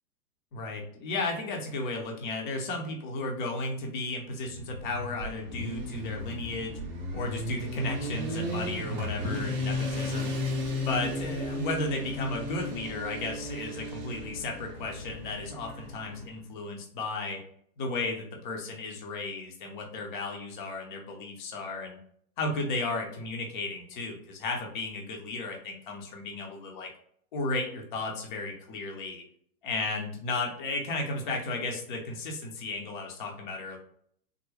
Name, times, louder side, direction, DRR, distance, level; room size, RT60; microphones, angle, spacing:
voice 1, 0.5-6.8 7.1-10.4 10.8-17.4 17.8-22.0 22.4-26.9 27.3-29.2 29.6-33.8, left 2 dB, 30° left, 1 dB, 0.5 m, -34 dB
Motorcycle, 4.5-16.2, left 1 dB, 30° right, 0.5 m, -35 dB
3.5 x 2.0 x 3.1 m, 0.64 s
hypercardioid pair, 155°, 48 cm